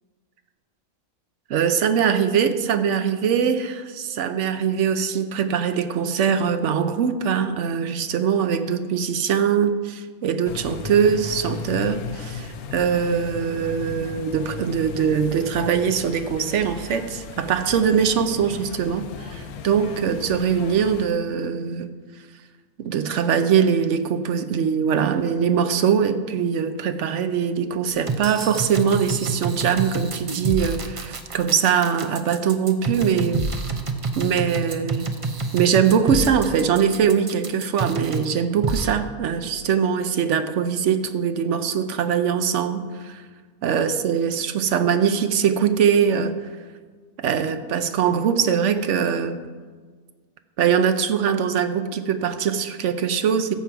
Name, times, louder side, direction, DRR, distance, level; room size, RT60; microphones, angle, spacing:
voice 1, 1.5-21.9 22.8-33.4 34.2-35.1 35.5-43.2 43.6-46.4 47.2-49.4 50.6-53.5, right 7 dB, 65° right, 10 dB, 0.9 m, -22 dB
sound 1, 10.4-21.1, left 6 dB, 90° left, 1.2 m, -36 dB
sound 2, 27.9-38.3 38.6-38.9, right 4 dB, 35° right, 0.6 m, -27 dB
14.0 x 7.4 x 4.6 m, 1.5 s
omnidirectional pair, 1.5 m